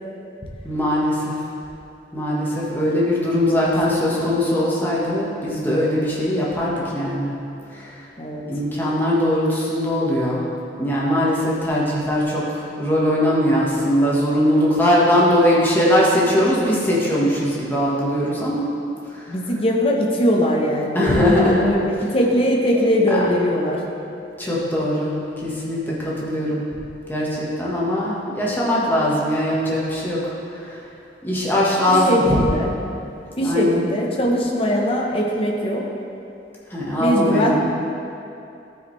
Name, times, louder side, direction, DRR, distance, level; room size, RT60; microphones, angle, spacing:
voice 1, 0.6-1.3 2.1-7.4 7.7-7.9 8.5-10.5 10.8-18.7 19.1-19.5 20.9-21.6 22.1-22.3 22.7-23.3 24.4-25.2 25.4-26.6 27.1-30.8 31.2-32.5 33.4-34.0 36.7-37.6, equal, 10° left, -6 dB, 1.4 m, -21 dB
voice 2, 3.9-4.2 8.2-8.4 19.3-23.8 32.1-32.7 33.4-35.8 37.0-37.6, equal, 30° left, -1 dB, 1.0 m, -21 dB
13.5 x 4.8 x 3.2 m, 2.7 s
head